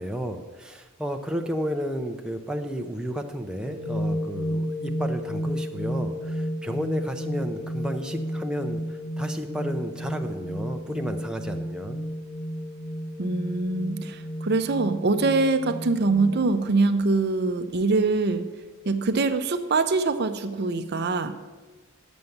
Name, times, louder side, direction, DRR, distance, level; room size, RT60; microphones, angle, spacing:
voice 1, 0.0-12.0, equal, 5° right, 3 dB, 0.6 m, -32 dB
sound 1, 3.6-16.4, equal, 75° left, 2.7 m, -32 dB
voice 2, 13.2-18.5 18.9-21.4, right 3 dB, 50° right, 9 dB, 0.6 m, -24 dB
9.3 x 7.0 x 6.6 m, 1.3 s
head